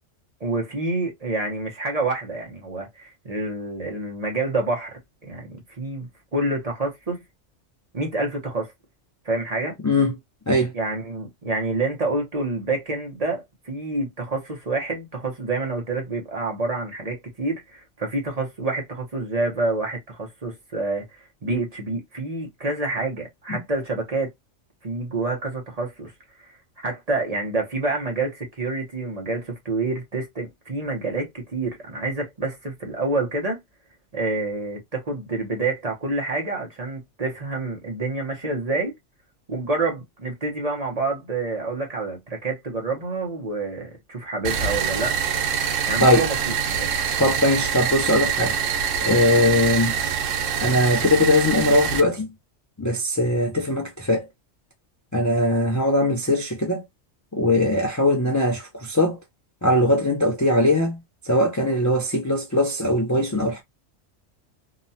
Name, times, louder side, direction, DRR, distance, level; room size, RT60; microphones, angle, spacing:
voice 1, 0.4-7.2 7.9-8.7 9.2-9.8 10.7-24.3 24.8-26.1 26.4-26.5 26.8-33.6 34.1-38.9 39.5-45.2 45.9-46.9 55.7-55.8, right 2 dB, 35° right, 0.8 m, -28 dB
sound 1, 44.4-52.0, right 7 dB, 85° right, 1.0 m, -25 dB
voice 2, 47.2-48.6 49.0-49.9 50.6-52.3 52.8-54.3 55.1-56.8 57.3-59.2 59.6-61.0 61.2-63.6, left 1 dB, 25° left, 0.4 m, -20 dB
2.8 x 2.2 x 2.6 m
omnidirectional pair, 1.3 m